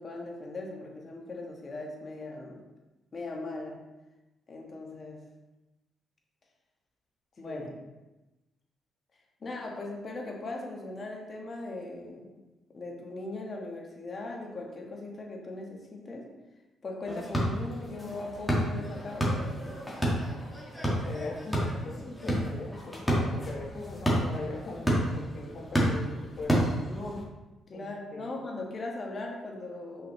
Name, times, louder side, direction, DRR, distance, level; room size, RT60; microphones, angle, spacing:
voice 1, 0.0-2.6 3.1-3.8 4.5-5.2 7.4-7.7 9.4-12.3 12.7-16.3 16.8-19.8 27.7-30.1, left 2 dB, 40° left, 0 dB, 1.4 m, -39 dB
voice 2, 7.4-7.7 21.0-26.9 27.7-27.9 28.1-28.4, left 3 dB, 55° left, -1 dB, 1.4 m, -41 dB
sound 1, 17.1-27.2, equal, 5° left, 1.7 m, -30 dB
5.6 x 5.2 x 3.2 m, 1.1 s
cardioid pair, 90°, 0 cm